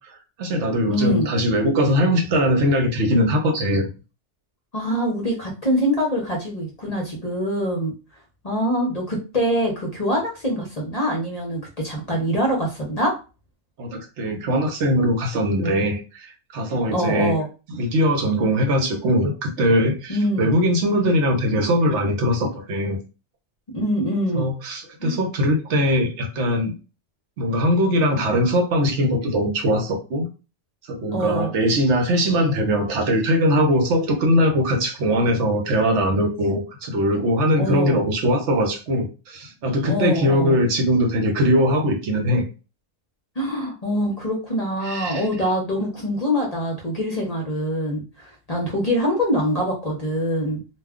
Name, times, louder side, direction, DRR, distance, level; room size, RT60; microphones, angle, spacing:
voice 1, 0.4-3.9 13.8-17.3 17.7-23.0 24.3-26.7 27.4-30.3 30.9-42.4 44.8-45.2, equal, 75° right, 3 dB, 1.0 m, -21 dB
voice 2, 0.9-1.3 4.7-7.9 8.4-13.1 16.9-17.5 20.1-20.5 23.7-24.5 25.0-25.2 31.1-31.5 37.6-38.0 39.9-40.6 43.4-50.6, equal, 40° left, -1 dB, 0.7 m, -24 dB
2.4 x 2.2 x 3.5 m, 0.32 s
omnidirectional pair, 1.2 m